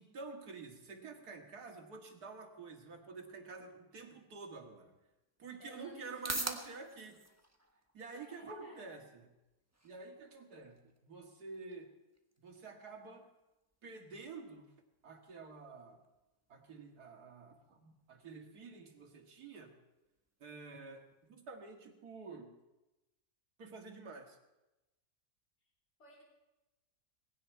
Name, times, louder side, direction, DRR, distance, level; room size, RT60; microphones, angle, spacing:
voice 1, 0.0-4.9 5.4-7.2 7.9-9.3 9.8-11.9 12.4-13.3 13.8-14.7 15.0-16.0 16.5-19.8 20.4-22.5 23.6-24.4, right 4 dB, 80° right, 3 dB, 2.4 m, -49 dB
sound 1, 4.8-21.7, right 1 dB, 10° right, 1.2 m, -51 dB
voice 2, 5.6-6.8 8.2-9.0 26.0-26.2, left 2 dB, 45° left, -2 dB, 3.6 m, -57 dB
19.0 x 16.5 x 4.6 m, 1.0 s
omnidirectional pair, 1.6 m